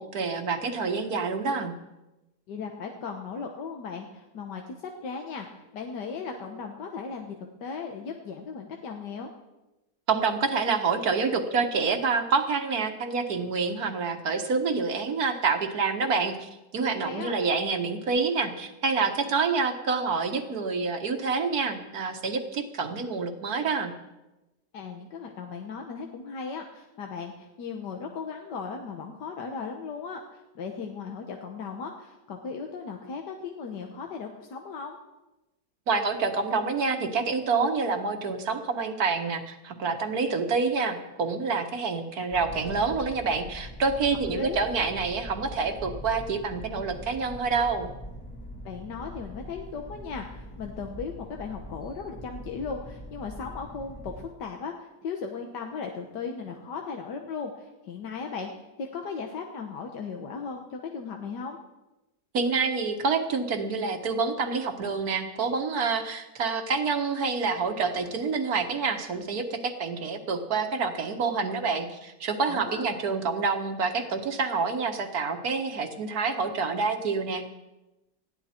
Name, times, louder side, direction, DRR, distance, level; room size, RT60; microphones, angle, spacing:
voice 1, 0.0-1.7 10.1-23.9 35.9-47.9 62.3-77.4, right 4 dB, 65° right, 6 dB, 1.9 m, -27 dB
voice 2, 2.5-9.3 17.0-17.4 24.7-35.0 44.3-44.6 48.7-61.6 72.5-72.9, left 5 dB, 85° left, 3 dB, 1.8 m, -37 dB
sound 1, 42.3-54.3, equal, 15° left, 1.8 m, -42 dB
20.0 x 14.5 x 4.4 m, 1.0 s
omnidirectional pair, 1.8 m